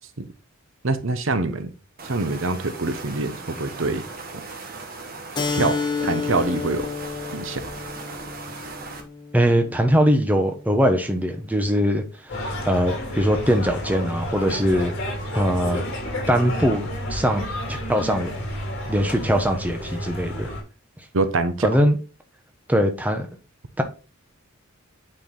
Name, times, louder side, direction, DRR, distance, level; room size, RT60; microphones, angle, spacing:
voice 1, 0.8-1.7 2.0-4.0 5.5-6.9 7.3-7.6 21.1-21.7, right 3 dB, 65° right, 0.9 m, -25 dB
sound 1, 2.0-9.0, right 3 dB, 45° right, 1.5 m, -38 dB
Keyboard (musical), 5.3-10.5, left 5 dB, 20° left, 0.9 m, -31 dB
voice 2, 9.3-14.9 15.3-15.8 16.3-18.3 18.9-20.5 21.6-22.0 22.7-23.3 23.8-23.9, equal, 10° right, 1.0 m, -21 dB
sound 2, 12.3-20.6, left 1 dB, 60° left, 2.9 m, -30 dB
8.9 x 4.6 x 3.9 m
head